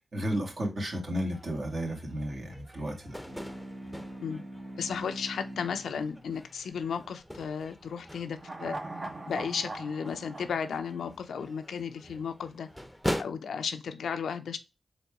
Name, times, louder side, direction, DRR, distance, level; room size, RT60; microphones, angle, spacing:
voice 1, 0.0-3.2, equal, 60° right, 2.0 m, -33 dB
sound 1, 1.3-13.2, equal, 5° left, 0.7 m, -42 dB
sound 2, 3.2-8.1, right 1 dB, 80° right, 2.1 m, -45 dB
voice 2, 4.8-8.7 9.3-12.7 13.2-14.6, left 6 dB, 85° left, 0.5 m, -34 dB
sound 3, 8.4-11.8 12.1-12.2, right 2 dB, 45° right, 1.0 m, -41 dB
4.1 x 3.5 x 3.5 m
cardioid pair, 45°, 0 cm